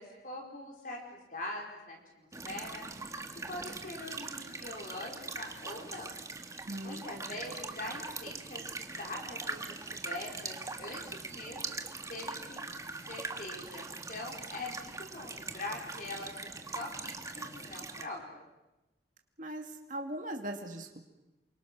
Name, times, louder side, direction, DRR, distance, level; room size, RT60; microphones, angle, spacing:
voice 1, 0.0-3.2 3.5-6.1 6.5-12.6 13.1-18.4, left 2 dB, 50° left, 0 dB, 4.6 m, -43 dB
creek long, 2.3-18.0, right 3 dB, 20° right, 1.6 m, -42 dB
voice 2, 6.7-7.0 19.4-21.0, right 1 dB, 45° right, 3 dB, 2.4 m, -39 dB
28.5 x 24.0 x 6.2 m, 0.97 s
head